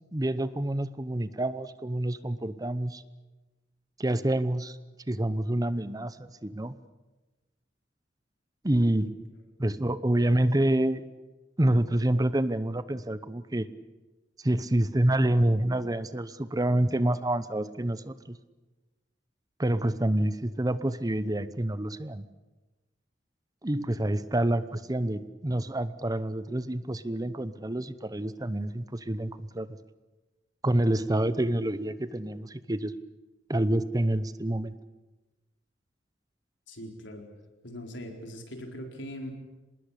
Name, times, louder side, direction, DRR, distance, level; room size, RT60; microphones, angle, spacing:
voice 1, 0.1-3.0 4.0-4.8 5.1-6.7 8.6-9.1 9.6-11.0 11.6-13.7 14.4-18.4 19.6-22.2 23.6-29.8 30.6-32.9 33.5-34.8, right 1 dB, 20° right, 14 dB, 0.8 m, -27 dB
voice 2, 36.7-37.2 37.6-39.3, equal, 90° left, 3 dB, 4.3 m, -41 dB
26.0 x 20.0 x 8.5 m, 1.1 s
head